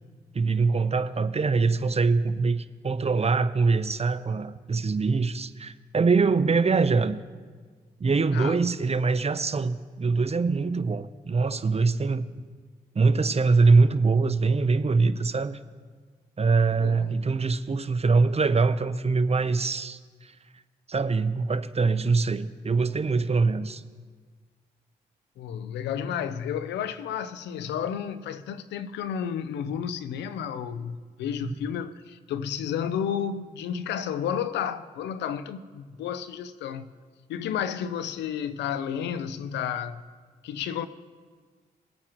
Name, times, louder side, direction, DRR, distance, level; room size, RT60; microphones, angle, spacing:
voice 1, 0.3-7.2 8.0-12.3 12.9-15.6 16.4-20.3 20.9-23.8 31.4-31.5, right 4 dB, 35° right, 0.8 m, -23 dB
voice 2, 25.4-36.9 37.3-40.0 40.4-40.9, left 8 dB, 90° left, 0.6 m, -31 dB
22.0 x 8.7 x 3.0 m
supercardioid pair, 45°, 18 cm